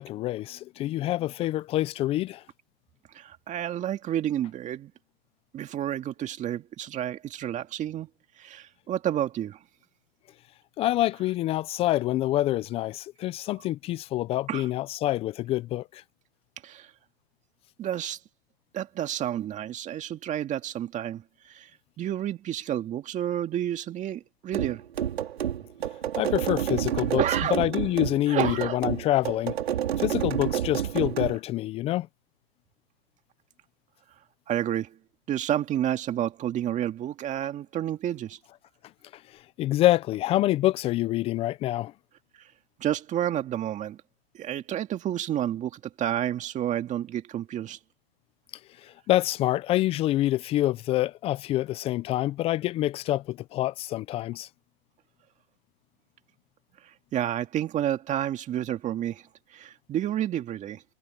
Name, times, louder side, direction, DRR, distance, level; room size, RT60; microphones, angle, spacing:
voice 1, 0.0-2.4 10.8-16.0 26.1-27.2 27.5-29.6 30.0-32.1 39.3-41.9 48.8-54.5, left 15 dB, 20° left, 0.5 m, -26 dB
voice 2, 3.1-4.9 5.5-8.1 8.4-9.6 14.5-14.7 16.6-16.9 17.8-18.2 18.7-24.8 27.2-27.6 28.3-28.8 34.5-35.0 35.3-38.4 42.3-42.5 42.8-44.0 44.3-47.8 56.8-60.8, right 11 dB, 25° right, 2.1 m, -30 dB
sound 1, 24.5-31.4, right 10 dB, 80° right, 4.1 m, -29 dB
hypercardioid pair, 135°, 31 cm